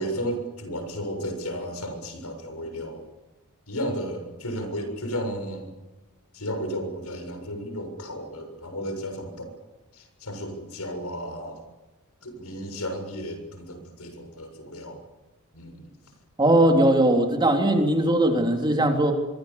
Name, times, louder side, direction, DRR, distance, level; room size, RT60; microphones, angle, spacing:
voice 1, 0.0-3.1 3.7-5.7 6.3-9.5 9.9-11.7 12.2-15.0 15.5-16.0, equal, 85° left, 6 dB, 7.0 m, -33 dB
voice 2, 16.4-19.1, right 1 dB, 20° right, 2 dB, 3.5 m, -20 dB
24.5 x 24.0 x 7.3 m, 1.1 s
head